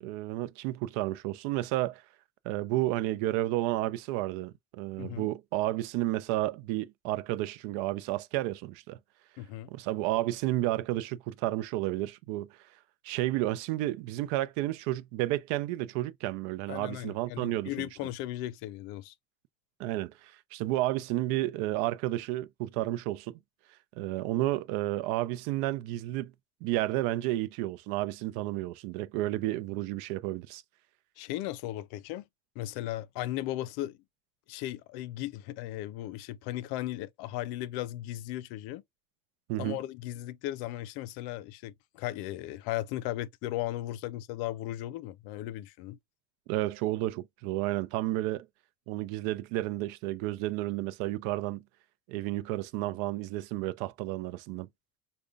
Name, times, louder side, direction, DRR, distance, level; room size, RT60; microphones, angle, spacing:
voice 1, 0.0-2.0 2.4-9.0 9.7-12.5 13.0-17.9 19.8-23.4 24.0-26.3 26.6-30.6 39.5-39.8 46.5-48.5 48.9-51.6 52.1-54.7, right 16 dB, 85° right, 0.5 m, -31 dB
voice 2, 5.0-5.3 9.4-9.7 16.7-19.1 31.2-32.3 32.6-34.0 34.5-38.8 39.6-46.0, left 14 dB, 70° left, 0.5 m, -36 dB
5.0 x 2.2 x 2.4 m
cardioid pair, 155°, 39 cm